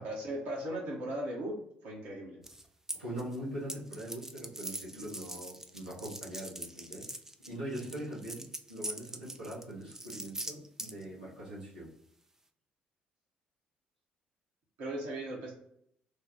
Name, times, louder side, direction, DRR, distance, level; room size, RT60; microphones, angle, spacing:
voice 1, 0.0-2.4 14.8-15.5, right 1 dB, 65° right, -3 dB, 1.0 m, -37 dB
sound 1, 2.4-3.4 3.7-11.0, right 1 dB, 10° right, 0.4 m, -42 dB
voice 2, 3.0-7.1 7.4-11.9, right 1 dB, 90° right, -10 dB, 1.3 m, -42 dB
3.3 x 2.2 x 4.3 m, 0.70 s
figure-of-eight pair, 45°, 4 cm